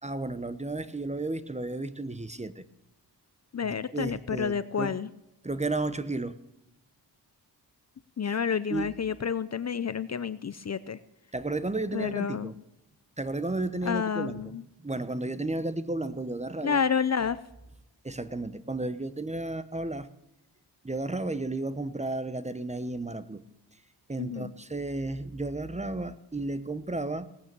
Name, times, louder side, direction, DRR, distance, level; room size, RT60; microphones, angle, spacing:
voice 1, 0.0-2.6 3.6-5.0 5.4-6.4 8.3-8.4 8.7-8.9 11.3-12.5 13.2-14.6 14.8-16.8 18.0-20.1 20.8-23.4 24.1-27.3, right 2 dB, 15° right, 13 dB, 1.0 m, -33 dB
voice 2, 3.5-5.1 8.2-11.0 11.9-12.5 13.8-14.6 16.6-17.4 24.2-24.5, left 6 dB, 40° left, 14 dB, 0.7 m, -29 dB
18.0 x 9.2 x 6.9 m, 0.90 s
cardioid pair, 70°, 42 cm